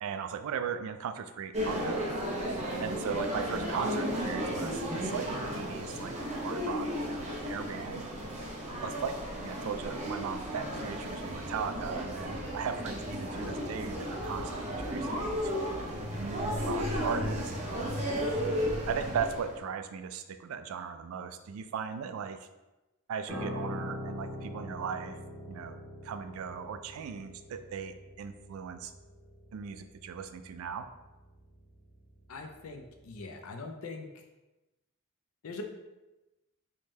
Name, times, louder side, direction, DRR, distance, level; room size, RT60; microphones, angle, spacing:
voice 1, 0.0-2.1 2.8-8.1 8.8-14.5 14.8-15.7 16.2-17.5 17.8-18.1 18.9-22.5 23.1-25.2 25.5-28.9 29.5-30.9, right 7 dB, 75° right, 9 dB, 0.3 m, -38 dB
sound 1, 1.5-19.6, equal, 30° right, 0.6 m, -34 dB
Piano, 23.3-32.7 32.9-33.2, left 1 dB, 5° right, 1.3 m, -43 dB
voice 2, 32.3-34.3 35.4-35.6, left 3 dB, 80° left, 5 dB, 0.5 m, -42 dB
3.5 x 2.7 x 3.1 m, 1.0 s
head